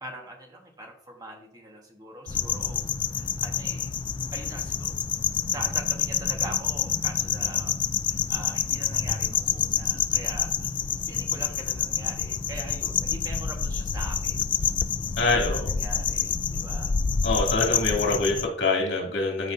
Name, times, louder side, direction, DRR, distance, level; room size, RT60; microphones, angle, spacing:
voice 1, 0.0-3.9 4.3-5.0 5.5-7.8 8.1-10.7 11.1-14.4 15.3-16.9, right 1 dB, 20° right, 1 dB, 1.5 m, -42 dB
sound 1, 2.3-18.5, left 7 dB, 30° left, 0.3 m, -27 dB
voice 2, 15.2-15.7 17.2-19.5, left 3 dB, 85° left, -1 dB, 2.6 m, -25 dB
13.5 x 5.0 x 2.7 m, 0.66 s
head